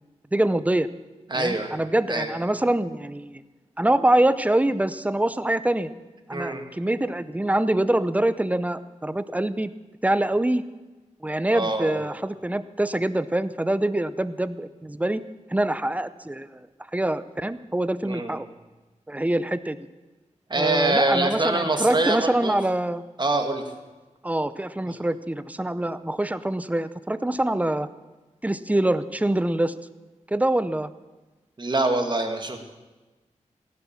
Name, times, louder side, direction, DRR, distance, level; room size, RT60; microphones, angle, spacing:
voice 1, 0.3-0.9 1.3-3.4 3.8-5.9 6.3-9.7 10.0-10.6 11.2-15.2 15.5-16.6 16.9-18.5 19.1-19.8 20.6-23.0 24.2-27.9 28.4-29.8 30.3-30.9, right 1 dB, 10° right, 14 dB, 0.6 m, -24 dB
voice 2, 1.3-1.7 2.1-2.3 6.3-6.6 11.5-12.0 18.0-18.4 20.5-22.6 23.2-23.6 24.9-25.0 31.6-32.6, right 2 dB, 35° right, 5 dB, 1.9 m, -24 dB
15.5 x 11.0 x 7.3 m, 1.2 s
wide cardioid pair, 80°, 13 cm